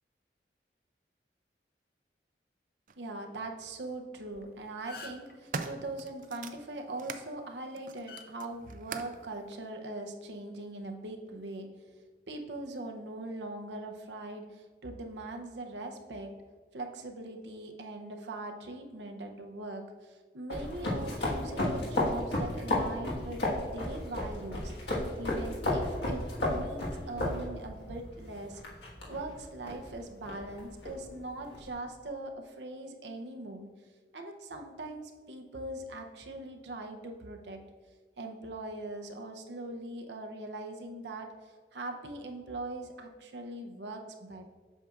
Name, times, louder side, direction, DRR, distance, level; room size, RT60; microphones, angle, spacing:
sound 1, 2.9-3.0 4.1-4.4 5.0-7.3 7.7-9.2 10.1-10.2, right 5 dB, 50° right, 0.4 m, -42 dB
voice 1, 3.0-11.7 12.3-16.3 16.7-28.6 29.1-33.7 34.1-37.6 38.2-44.5, right 2 dB, 85° right, 4 dB, 0.7 m, -41 dB
sound 2, 4.3-4.4 4.7-5.3 7.0-7.2 8.1-8.2 9.3-9.5, left 4 dB, 55° left, 0.6 m, -46 dB
sound 3, 20.5-31.7, left 1 dB, 80° left, 1.6 m, -34 dB
8.0 x 6.0 x 2.5 m, 1.5 s
head